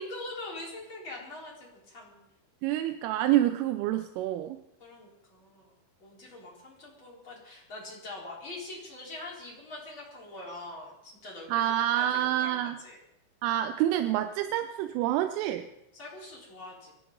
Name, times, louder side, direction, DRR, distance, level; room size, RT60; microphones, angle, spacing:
voice 1, 0.0-2.2 4.8-5.7 6.0-12.5 12.8-13.0 15.9-16.9, left 2 dB, 25° left, -4 dB, 4.4 m, -43 dB
voice 2, 2.6-4.6 11.5-12.8 13.4-15.7, right 12 dB, 85° right, 9 dB, 3.2 m, -27 dB
23.5 x 12.0 x 3.9 m, 0.84 s
omnidirectional pair, 5.7 m